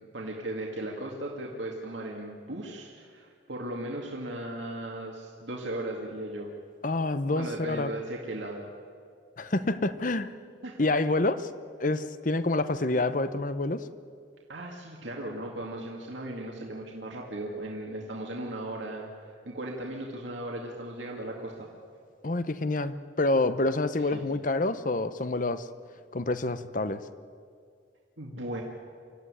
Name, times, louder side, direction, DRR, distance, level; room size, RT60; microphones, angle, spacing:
voice 1, 0.1-6.5 7.3-8.7 10.6-10.8 14.5-21.7 24.1-24.2 28.2-28.6, right 1 dB, 75° right, -1 dB, 2.4 m, -37 dB
voice 2, 6.8-7.9 9.4-10.3 10.8-11.5 11.8-13.9 22.2-25.7 26.1-27.0, left 2 dB, 45° left, 13 dB, 0.8 m, -27 dB
25.5 x 15.0 x 9.9 m, 2.2 s
head